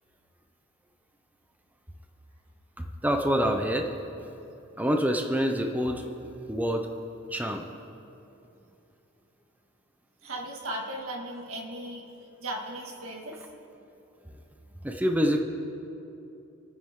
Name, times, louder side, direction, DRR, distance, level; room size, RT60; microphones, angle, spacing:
voice 1, 3.0-3.9 4.2-4.3 4.8-6.0 6.5-6.9 7.3-7.6 14.8-15.4, equal, 10° right, 4 dB, 0.8 m, -26 dB
voice 2, 10.2-12.0 12.4-13.4, right 1 dB, 80° right, 0 dB, 2.2 m, -36 dB
28.5 x 9.8 x 3.8 m, 2.8 s
head